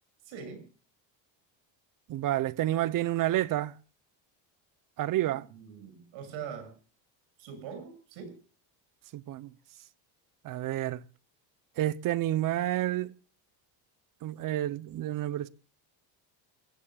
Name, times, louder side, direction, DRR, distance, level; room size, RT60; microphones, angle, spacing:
voice 1, 0.3-0.6 5.5-6.7 7.4-8.4, right 7 dB, 75° right, 6.9 m, -42 dB
voice 2, 2.1-3.7 5.0-5.5 9.1-9.5 10.4-11.0 11.8-13.1 14.2-15.5, right 14 dB, 45° right, 0.8 m, -29 dB
27.5 x 15.5 x 2.4 m
cardioid pair, 155°, 46 cm